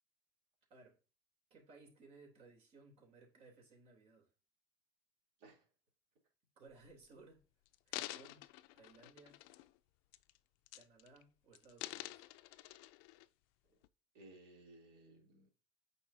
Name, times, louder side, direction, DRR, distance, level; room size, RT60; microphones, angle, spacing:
voice 1, 1.5-4.3 6.6-7.4 7.9-8.5 8.8-9.4 10.7-12.2, right 3 dB, 55° right, 3.2 m, -61 dB
sound 1, 6.7-7.0 7.7-9.8 10.1-10.4 10.7-11.2 11.5-13.3 13.8-13.9, left 17 dB, 85° left, 0.4 m, -48 dB
voice 2, 14.1-15.5, right 2 dB, 85° right, 3.1 m, -60 dB
8.6 x 5.5 x 2.7 m
cardioid pair, 120°, 13 cm